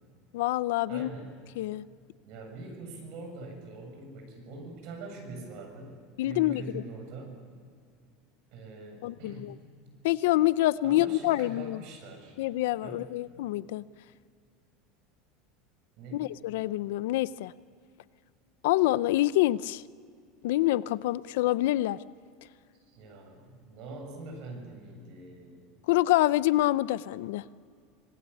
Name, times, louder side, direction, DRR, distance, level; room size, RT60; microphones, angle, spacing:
voice 1, 0.3-1.1 1.6-1.8 6.2-6.8 9.0-9.5 10.0-11.8 12.4-13.8 16.1-17.5 18.6-19.8 20.4-22.0 25.9-27.4, left 16 dB, 75° left, 17 dB, 0.6 m, -26 dB
voice 2, 0.9-1.4 2.3-6.0 6.2-7.4 8.5-9.7 10.8-12.4 12.8-13.1 16.0-16.3 22.9-25.6, right 2 dB, 50° right, 4 dB, 7.3 m, -43 dB
26.0 x 19.5 x 8.5 m, 2.2 s
supercardioid pair, 165°, 0 cm